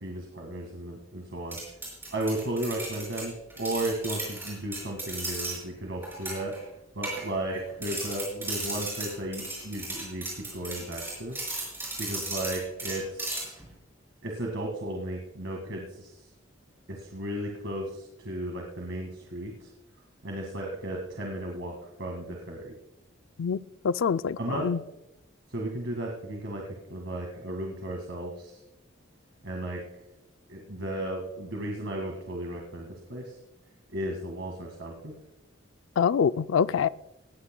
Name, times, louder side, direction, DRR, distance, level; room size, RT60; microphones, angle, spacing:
voice 1, 0.0-1.6 2.1-6.5 6.9-10.2 10.5-11.4 12.0-13.5 14.2-16.1 16.9-19.7 20.2-22.7 24.4-24.7 25.5-26.6 26.9-28.6 29.4-29.8 30.5-33.3 33.9-35.1, right 1 dB, 70° right, 1 dB, 1.9 m, -34 dB
Schraubzwingen-Klavier, 1.5-5.6 6.0-6.6 7.0-7.6 7.8-13.7, right 2 dB, 10° right, 5.6 m, -36 dB
voice 2, 23.8-24.8 36.0-36.9, left 6 dB, 75° left, 15 dB, 0.4 m, -25 dB
18.5 x 15.0 x 2.2 m, 0.90 s
head